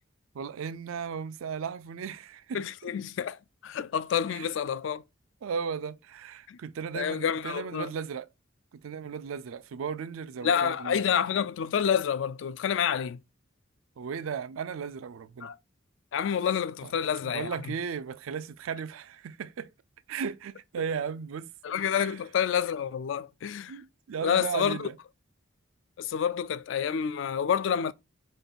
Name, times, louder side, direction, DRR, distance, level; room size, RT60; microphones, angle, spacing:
voice 1, 0.3-2.9 4.3-4.5 5.4-8.3 8.8-11.0 14.0-15.5 16.8-16.9 17.2-19.7 20.1-21.5 22.0-22.1 23.7-24.9, right 6 dB, 85° right, 0.4 m, -36 dB
voice 2, 2.5-5.0 6.5-6.6 6.9-7.9 10.4-13.2 15.4-15.6 16.1-17.7 21.6-23.8 24.2-24.9 26.0-27.9, left 8 dB, 70° left, 0.3 m, -28 dB
5.2 x 2.3 x 3.8 m
head